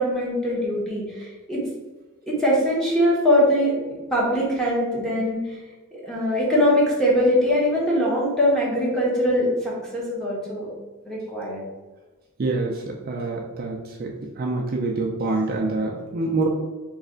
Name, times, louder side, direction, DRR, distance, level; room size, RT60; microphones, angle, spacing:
voice 1, 0.0-1.6 2.3-3.8 4.1-5.6 5.9-10.7 11.0-11.6, equal, ahead, -6 dB, 1.1 m, -22 dB
voice 2, 12.4-14.1 14.4-16.5, right 3 dB, 45° right, -1 dB, 0.4 m, -26 dB
3.2 x 3.1 x 3.8 m, 1.2 s
head